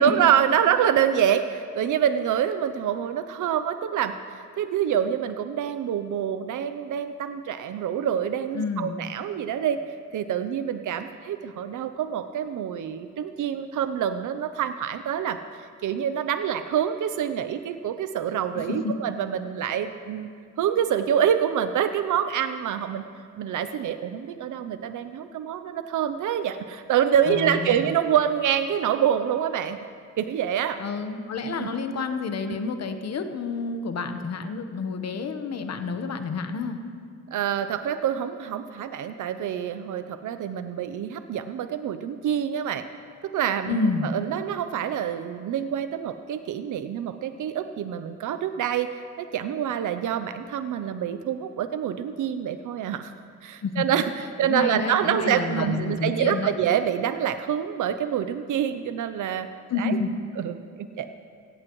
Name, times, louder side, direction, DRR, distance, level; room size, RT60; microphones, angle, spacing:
voice 1, 0.0-4.1 4.5-9.8 10.1-15.4 15.8-20.3 20.6-23.0 23.4-29.8 30.2-30.8 31.5-31.7 32.5-32.6 37.3-42.8 43.3-43.8 44.0-53.1 53.4-59.5 59.8-60.0 60.4-61.1, right 9 dB, 80° right, 9 dB, 0.6 m, -26 dB
voice 2, 8.5-9.0 18.8-18.9 27.3-27.9 30.8-36.8 43.7-44.1 53.6-53.8 54.4-56.5 59.7-60.1, left 4 dB, 60° left, 7 dB, 1.0 m, -29 dB
17.5 x 15.5 x 3.1 m, 2.1 s
wide cardioid pair, 125°, 30 cm